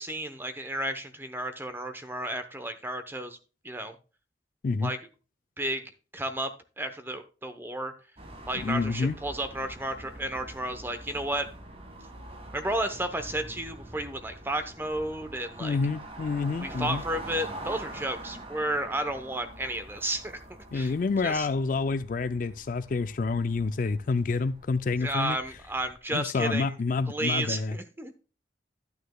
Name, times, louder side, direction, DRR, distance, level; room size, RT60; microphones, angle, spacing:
voice 1, 0.0-3.4 3.6-3.9 4.8-5.0 5.6-5.8 6.1-6.5 6.8-7.9 8.5-11.5 12.5-15.8 16.6-20.4 20.7-20.9 21.2-21.5 25.0-26.8 27.1-28.1, right 1 dB, 10° right, 0.8 m, -32 dB
sound 1, 8.2-26.0, right 1 dB, 30° right, 1.7 m, -45 dB
voice 2, 8.5-9.2 15.6-17.0 20.7-25.4 26.1-27.8, left 4 dB, 45° left, 0.3 m, -28 dB
11.0 x 9.4 x 2.2 m
head